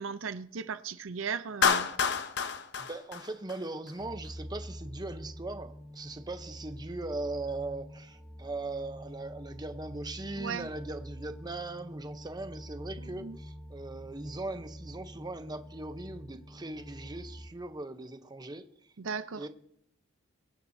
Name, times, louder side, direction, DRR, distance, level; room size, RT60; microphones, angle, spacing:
voice 1, 0.0-1.9 10.4-10.7 13.2-13.4 19.0-19.4, right 6 dB, 90° right, 0.6 m, -36 dB
Clapping, 1.6-3.9, left 6 dB, 65° left, 0.8 m, -29 dB
voice 2, 2.8-18.9 19.4-19.5, right 2 dB, 20° right, 0.8 m, -39 dB
sound 1, 4.0-17.5, equal, ahead, 1.3 m, -46 dB
23.0 x 9.8 x 2.7 m
head